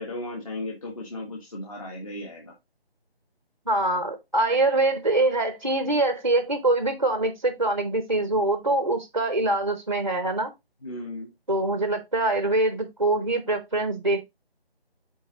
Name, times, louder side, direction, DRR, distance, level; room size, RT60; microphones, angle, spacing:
voice 1, 0.0-2.5 10.8-11.3, left 1 dB, 35° left, 1.5 m, -35 dB
voice 2, 3.7-10.5 11.5-14.2, right 2 dB, 35° right, 0.6 m, -24 dB
9.0 x 3.9 x 2.9 m
figure-of-eight pair, 165°, 31 cm